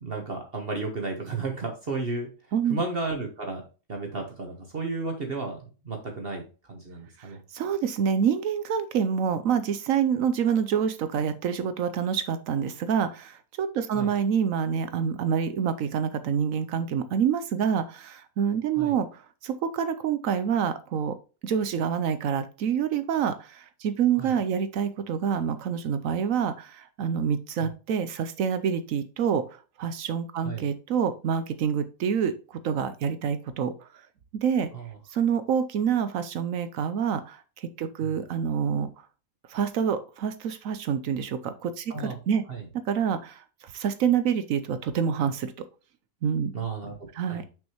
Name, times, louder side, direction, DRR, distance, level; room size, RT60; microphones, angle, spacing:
voice 1, 0.0-2.3 2.7-3.6 3.9-5.6 5.8-6.4 6.7-7.4 13.9-14.1 18.8-18.9 24.2-24.3 30.4-30.6 34.7-34.9 38.0-38.1 41.9-42.2 42.5-42.6 46.5-47.4, right 3 dB, 45° right, 3 dB, 1.3 m, -33 dB
voice 2, 7.2-21.2 21.4-34.1 34.4-34.7 35.1-38.9 39.5-42.4 42.9-45.5 46.2-46.7 47.1-47.4, right 7 dB, 75° right, 11 dB, 1.0 m, -27 dB
6.1 x 5.4 x 3.0 m, 0.33 s
omnidirectional pair, 1.4 m